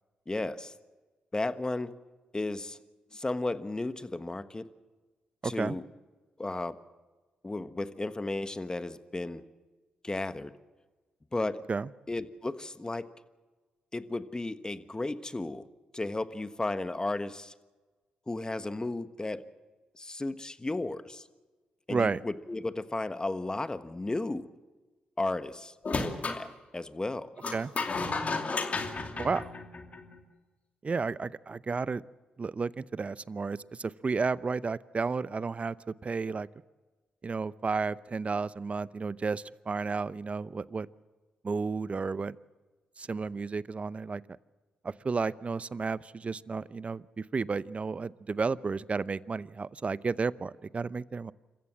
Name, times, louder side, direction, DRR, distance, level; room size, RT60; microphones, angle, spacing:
voice 1, 0.3-0.7 1.3-1.9 2.3-2.8 3.1-4.7 5.4-5.8 6.4-6.8 7.4-9.4 10.0-10.5 11.3-11.6 12.1-13.1 13.9-15.6 15.9-17.5 18.3-19.4 20.0-21.2 21.9-24.5 25.2-26.5 26.7-27.3, left 2 dB, 25° left, 12 dB, 1.4 m, -34 dB
voice 2, 5.4-5.7 11.7-11.9 21.9-22.2 27.5-27.7 29.2-29.5 30.8-32.0 32.4-36.5 37.2-40.9 41.4-42.3 43.0-44.2 44.8-51.3, right 4 dB, 40° right, 19 dB, 0.7 m, -32 dB
sound 1, 25.8-26.4 27.4-30.1, left 3 dB, 45° left, 2.6 m, -33 dB
27.0 x 15.0 x 7.6 m, 1.3 s
supercardioid pair, 50°, 3 cm